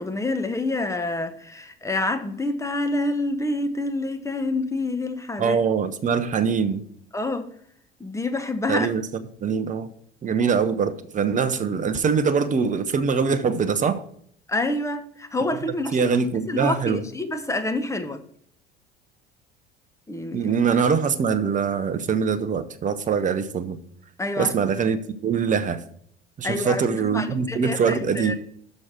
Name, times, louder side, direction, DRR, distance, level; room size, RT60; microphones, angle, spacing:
voice 1, 0.0-5.6 7.1-7.5 8.0-8.9 14.5-16.0 16.5-18.2 20.1-20.5 24.2-24.5 26.4-28.4, left 2 dB, 10° left, 0.8 m, -27 dB
voice 2, 5.4-6.9 8.7-9.1 9.4-9.9 10.2-14.0 15.9-17.0 20.3-23.8 24.4-25.0 25.2-25.8 26.4-28.4, right 6 dB, 25° right, 0.7 m, -23 dB
6.2 x 5.3 x 5.9 m
hypercardioid pair, 65°, 31 cm